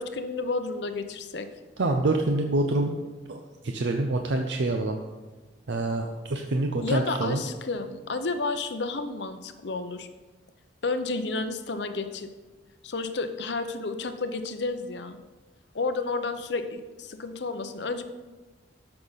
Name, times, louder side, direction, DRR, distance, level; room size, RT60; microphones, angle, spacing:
voice 1, 0.0-1.5 6.8-10.1 10.8-12.3 12.8-15.2 15.7-18.0, left 3 dB, 65° left, 9 dB, 0.7 m, -31 dB
voice 2, 1.8-2.9 3.3-5.0 5.7-7.4, right 2 dB, 70° right, 3 dB, 0.6 m, -26 dB
13.5 x 5.7 x 4.0 m, 1.2 s
head